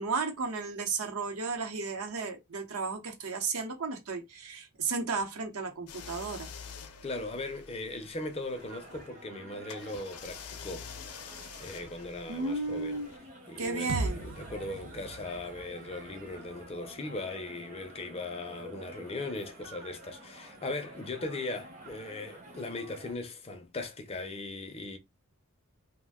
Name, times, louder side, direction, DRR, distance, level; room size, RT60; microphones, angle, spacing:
voice 1, 0.0-6.5 12.3-13.1 13.6-14.2, right 4 dB, 75° right, 0.8 m, -34 dB
sound 1, 5.9-9.1 9.7-13.2, left 6 dB, 85° left, 0.5 m, -47 dB
voice 2, 7.0-10.9 11.6-13.0 13.5-25.0, left 2 dB, 25° left, 0.4 m, -39 dB
sound 2, 8.5-23.2, right 1 dB, 35° right, 0.8 m, -50 dB
sound 3, 13.9-17.8, right 3 dB, 55° right, 0.4 m, -40 dB
2.5 x 2.1 x 3.4 m
head